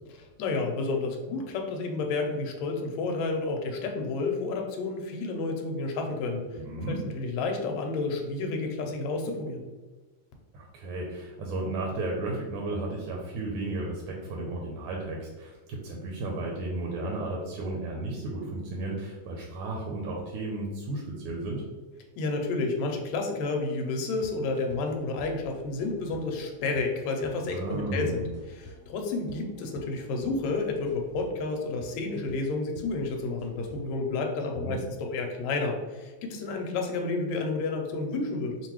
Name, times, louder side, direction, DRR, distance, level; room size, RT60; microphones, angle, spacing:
voice 1, 0.2-6.6 6.9-9.6 22.2-38.6, left 3 dB, 80° left, 2 dB, 1.8 m, -30 dB
voice 2, 6.6-7.0 10.5-21.6 27.5-28.3 34.6-34.8, right 2 dB, 80° right, -1 dB, 1.9 m, -34 dB
sound 1, 23.7-33.8, left 2 dB, 35° left, 1.1 m, -51 dB
5.6 x 2.2 x 3.0 m, 1.2 s
omnidirectional pair, 3.3 m